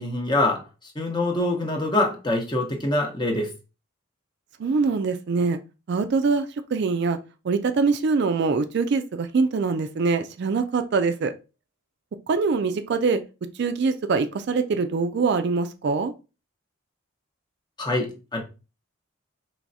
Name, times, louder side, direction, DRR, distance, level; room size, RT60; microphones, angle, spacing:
voice 1, 0.0-3.5 17.8-18.4, left 2 dB, 20° left, 2 dB, 0.8 m, -25 dB
voice 2, 4.6-5.6 5.9-6.5 6.7-7.2 7.4-11.3 12.3-13.2 13.6-16.1, right 4 dB, 55° right, 9 dB, 0.3 m, -23 dB
4.6 x 3.1 x 2.6 m, 0.31 s
head